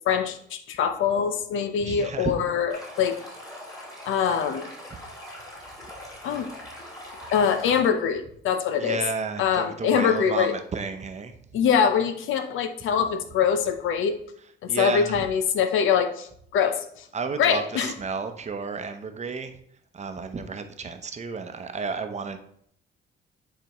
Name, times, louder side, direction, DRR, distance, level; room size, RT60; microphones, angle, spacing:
voice 1, 0.1-3.2 4.1-4.7 6.2-6.5 7.3-9.0 9.4-10.5 11.5-14.2 14.6-17.1 17.4-17.9, left 7 dB, 80° left, 9 dB, 0.7 m, -24 dB
voice 2, 1.8-2.4 8.8-11.4 14.7-15.3 17.1-19.5 19.9-22.4, right 5 dB, 35° right, 7 dB, 0.7 m, -32 dB
Stream, 2.7-7.8, left 1 dB, 20° left, 2.9 m, -42 dB
9.3 x 4.2 x 3.0 m, 0.67 s
cardioid pair, 90°, 20 cm